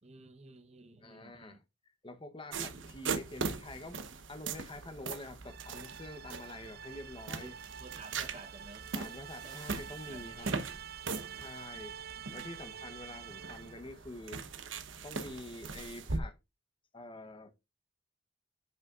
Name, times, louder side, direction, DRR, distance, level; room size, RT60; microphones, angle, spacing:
voice 1, 0.0-1.6 7.4-8.9 9.4-9.6 10.1-10.8 12.2-12.3, right 3 dB, 35° right, 1.0 m, -53 dB
voice 2, 1.0-1.6 2.0-4.0 4.3-7.6 8.9-10.5 11.4-12.0 12.3-14.4 15.0-16.4 16.9-17.5, left 2 dB, 25° left, 0.9 m, -47 dB
sound 1, 2.5-16.2, right 4 dB, 90° right, 1.0 m, -41 dB
sound 2, 5.4-13.9, right 9 dB, 55° right, 0.4 m, -48 dB
9.1 x 5.6 x 2.5 m
head